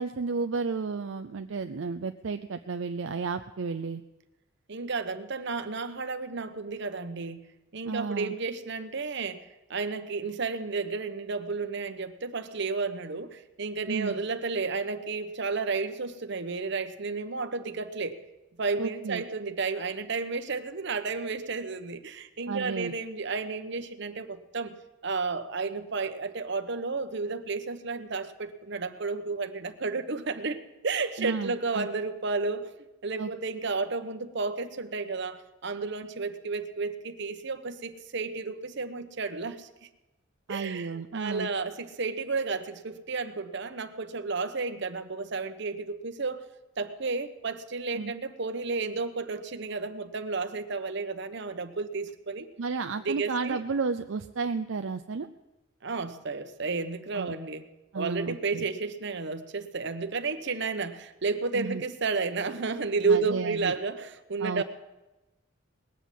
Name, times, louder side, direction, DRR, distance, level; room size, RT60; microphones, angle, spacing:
voice 1, 0.0-4.0 7.8-8.3 13.9-14.2 18.8-19.2 22.5-22.9 31.2-31.9 33.2-33.3 40.5-41.5 47.9-48.1 52.6-55.3 57.1-57.4 57.9-58.6 61.5-61.8 63.1-63.7 64.4-64.6, right 4 dB, 75° right, 7 dB, 0.5 m, -32 dB
voice 2, 4.7-7.4 7.7-9.4 9.7-18.2 18.6-24.8 25.0-32.7 33.0-39.7 40.5-46.4 46.8-52.5 53.0-53.6 55.8-57.6 57.9-64.6, right 4 dB, 60° right, 9 dB, 1.0 m, -32 dB
20.0 x 8.3 x 7.5 m, 1.0 s
head